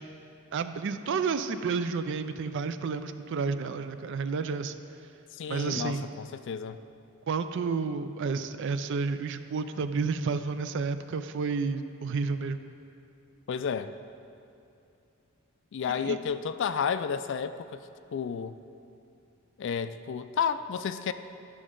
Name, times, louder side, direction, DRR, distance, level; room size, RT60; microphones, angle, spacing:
voice 1, 0.5-4.8 5.5-6.1 7.3-12.6 16.0-16.2, right 5 dB, 55° right, 10 dB, 0.4 m, -31 dB
voice 2, 5.3-6.8 13.5-13.9 15.7-17.8 18.1-18.5 19.6-21.1, left 6 dB, 55° left, 11 dB, 0.3 m, -31 dB
11.5 x 6.1 x 3.7 m, 2.6 s
head